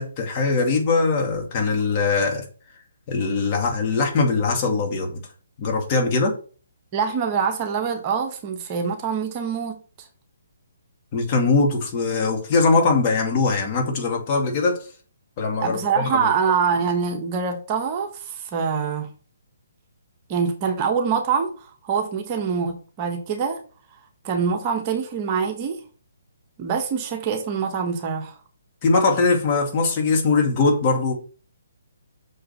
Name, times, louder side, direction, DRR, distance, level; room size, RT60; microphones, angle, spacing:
voice 1, 0.0-2.5 3.1-5.2 5.6-6.4 11.1-14.9 15.4-16.3 28.8-31.1, left 4 dB, 30° left, 2.3 m, -21 dB
voice 2, 6.9-9.8 15.6-19.1 20.3-23.6 24.2-25.8 26.6-28.3, right 6 dB, 30° right, 1.4 m, -24 dB
6.4 x 5.4 x 5.8 m
figure-of-eight pair, 135°, 0 cm